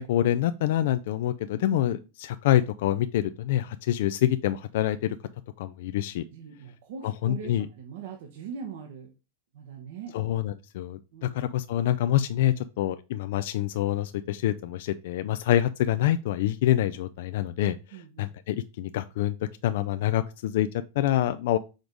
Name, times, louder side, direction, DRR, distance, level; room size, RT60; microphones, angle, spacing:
voice 1, 0.0-5.2 5.6-6.2 7.0-7.7 10.1-19.4 19.6-21.6, left 12 dB, 60° left, 0.4 m, -26 dB
voice 2, 6.3-9.1 9.5-10.2 11.1-11.4 17.9-18.3, right 6 dB, 65° right, 1.1 m, -41 dB
5.1 x 4.0 x 4.6 m
supercardioid pair, 155°, 0 cm